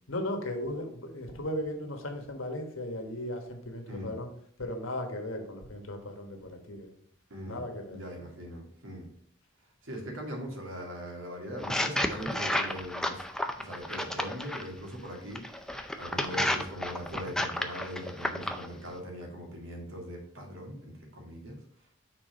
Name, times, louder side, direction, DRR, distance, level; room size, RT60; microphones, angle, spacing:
voice 1, 0.1-4.3 4.6-6.9 7.5-8.0, left 1 dB, 85° left, 4 dB, 1.4 m, -36 dB
voice 2, 7.3-9.1 9.8-13.3 13.6-21.6, equal, 85° right, 1 dB, 2.1 m, -41 dB
sound 1, 11.6-14.7 15.4-18.7, left 1 dB, 5° left, 0.4 m, -31 dB
6.2 x 4.2 x 5.1 m, 0.65 s
head